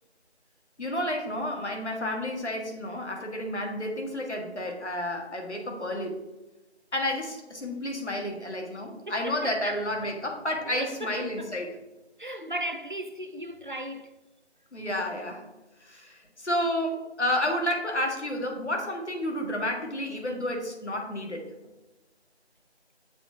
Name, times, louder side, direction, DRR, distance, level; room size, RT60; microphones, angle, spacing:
voice 1, 0.8-6.2 6.9-11.7 14.7-15.4 15.8-21.5, left 1 dB, 80° left, 1.6 m, -31 dB
voice 2, 9.1-10.2 10.7-11.5 12.2-14.2, right 1 dB, 45° right, 0.4 m, -36 dB
7.3 x 3.0 x 4.9 m
figure-of-eight pair, 170°, 34 cm